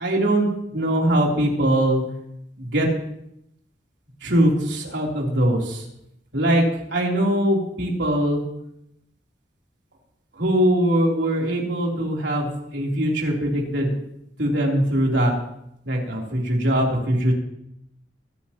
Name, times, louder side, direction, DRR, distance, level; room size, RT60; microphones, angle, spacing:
voice 1, 0.0-2.0 2.6-2.9 4.2-5.8 6.3-6.6 6.9-8.4 10.4-13.9 14.4-15.3 15.8-17.3, right 1 dB, 80° right, -1 dB, 3.3 m, -21 dB
24.0 x 11.5 x 3.0 m, 0.79 s
head